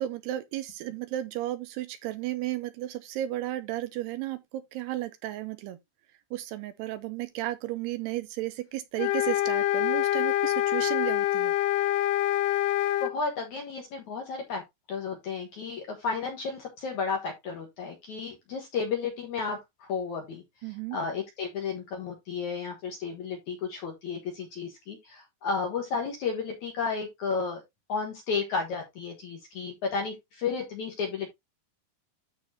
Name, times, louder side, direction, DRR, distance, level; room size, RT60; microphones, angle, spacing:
voice 1, 0.0-5.8 6.3-11.6 20.6-21.0, right 14 dB, 80° right, 2.5 m, -34 dB
sound 1, 9.0-13.1, left 14 dB, 85° left, 2.8 m, -26 dB
voice 2, 13.0-14.6 14.9-27.6 27.9-31.3, left 5 dB, 65° left, 2.0 m, -33 dB
13.0 x 4.4 x 2.7 m
omnidirectional pair, 5.1 m